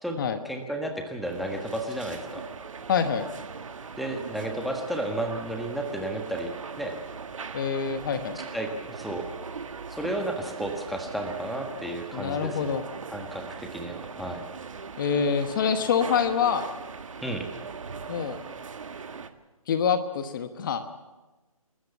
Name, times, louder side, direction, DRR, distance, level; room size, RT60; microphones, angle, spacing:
voice 1, 0.4-2.4 4.0-6.5 6.8-6.9 8.5-9.3 9.9-12.8 13.1-14.4 17.2-17.5, right 1 dB, ahead, 3 dB, 1.5 m, -32 dB
sound 1, 1.2-19.3, right 5 dB, 60° right, 1.6 m, -40 dB
voice 2, 2.9-3.3 7.5-8.4 12.1-12.8 15.0-16.7 18.1-18.4 19.7-20.8, left 7 dB, 35° left, 9 dB, 1.2 m, -26 dB
29.0 x 13.0 x 7.1 m, 1.1 s
figure-of-eight pair, 145°, 18 cm